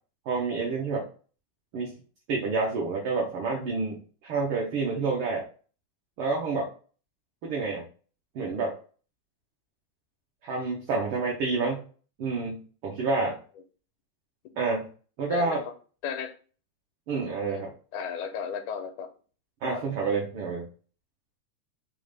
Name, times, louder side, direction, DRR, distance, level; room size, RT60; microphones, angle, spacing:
voice 1, 0.3-1.1 1.7-1.9 2.3-5.4 6.2-6.7 7.4-7.8 8.3-8.8 10.4-11.8 12.2-13.4 14.6-14.9 15.2-15.6 17.1-17.7 19.6-20.7, right 4 dB, 90° right, -1 dB, 1.1 m, -28 dB
voice 2, 16.0-16.4 17.5-17.7 17.9-19.1 19.7-19.8, left 7 dB, 85° left, 6 dB, 2.1 m, -34 dB
5.4 x 2.1 x 3.2 m, 0.39 s
omnidirectional pair, 3.4 m